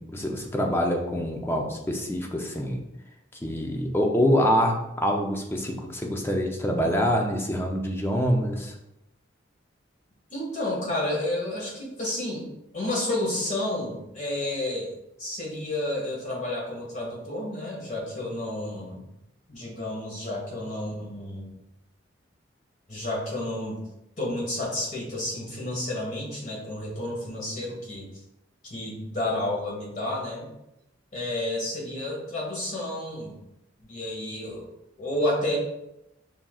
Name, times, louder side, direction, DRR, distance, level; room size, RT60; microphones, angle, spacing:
voice 1, 0.0-2.8 3.4-8.7, equal, 10° left, 1 dB, 0.5 m, -25 dB
voice 2, 10.3-12.5 12.7-14.9 15.2-19.1 19.5-21.5 22.9-23.8 24.2-28.1 28.6-30.5 31.1-33.4 33.8-34.6 35.0-35.6, left 1 dB, 40° left, -3 dB, 1.6 m, -31 dB
5.7 x 3.7 x 2.3 m, 0.87 s
head